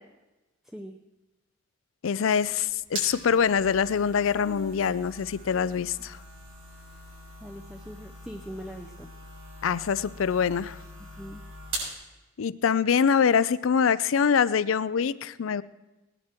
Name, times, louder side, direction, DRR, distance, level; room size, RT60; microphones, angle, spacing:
voice 1, 0.6-1.0 7.4-9.1 11.2-11.4, equal, ahead, 5 dB, 0.5 m, -41 dB
voice 2, 2.0-6.2 9.6-10.8 12.4-15.6, left 6 dB, 80° left, 17 dB, 0.4 m, -24 dB
sound 1, 2.4-12.0, right 1 dB, 85° right, 6.3 m, -42 dB
18.5 x 11.0 x 4.4 m, 1.1 s
head